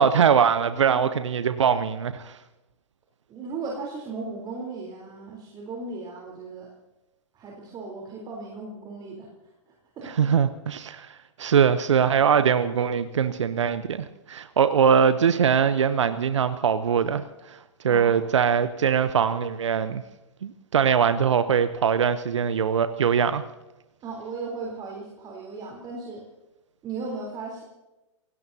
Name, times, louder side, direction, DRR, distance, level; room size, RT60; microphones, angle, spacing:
voice 1, 0.0-2.4 10.2-17.6 17.8-20.0 20.4-23.4, right 7 dB, 75° right, 12 dB, 0.8 m, -22 dB
voice 2, 3.3-6.7 7.3-9.3 9.7-10.3 14.6-14.8 17.9-18.2 24.0-26.2 26.8-27.6, right 4 dB, 30° right, -1 dB, 3.8 m, -36 dB
28.5 x 17.0 x 2.8 m, 1.0 s
figure-of-eight pair, 105°, 16 cm